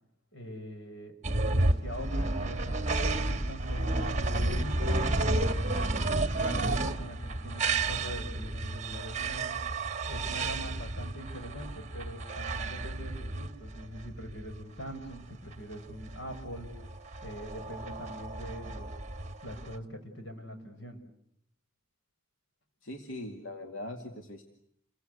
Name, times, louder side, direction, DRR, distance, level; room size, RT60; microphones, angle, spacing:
voice 1, 0.3-1.2 1.5-5.9 6.4-9.6 10.1-16.9 17.2-18.9 19.4-21.0, equal, 70° left, 6 dB, 6.3 m, -43 dB
sound 1, 1.2-19.8, right 2 dB, 35° right, 1.8 m, -32 dB
voice 2, 22.8-24.4, left 1 dB, 85° left, 4 dB, 2.5 m, -41 dB
29.5 x 23.0 x 8.3 m, 0.72 s
head